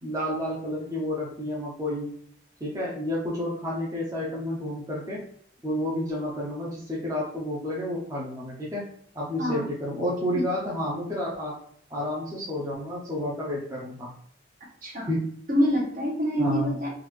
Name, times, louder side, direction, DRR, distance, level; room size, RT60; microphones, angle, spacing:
voice 1, 0.0-2.1 2.6-5.2 5.6-8.9 9.1-11.6 11.9-14.1 15.1-15.2 16.4-16.7, left 1 dB, 15° right, -5 dB, 0.6 m, -30 dB
voice 2, 15.5-16.9, equal, 45° right, -2 dB, 1.0 m, -26 dB
3.6 x 2.4 x 3.1 m, 0.62 s
head